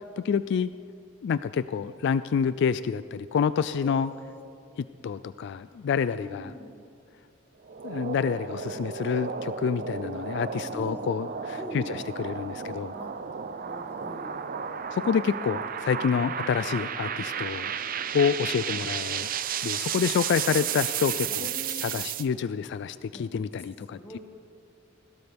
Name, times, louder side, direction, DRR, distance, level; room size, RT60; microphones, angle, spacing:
voice 1, 0.2-0.7 1.2-4.1 4.8-6.5 7.8-12.9 14.9-17.7 18.1-19.3 19.6-21.5 21.8-24.2, left 6 dB, 60° left, 14 dB, 0.3 m, -28 dB
voice 2, 3.8-4.4 6.2-6.7 10.5-11.1 11.6-12.3 12.9-13.1 13.6-14.5 20.1-20.2 21.3-21.9 23.1-23.2 23.9-24.2, equal, 10° left, 1 dB, 1.7 m, -43 dB
sound 1, 7.6-22.2, right 7 dB, 45° right, 0.6 m, -33 dB
21.0 x 16.5 x 3.5 m, 2.5 s
head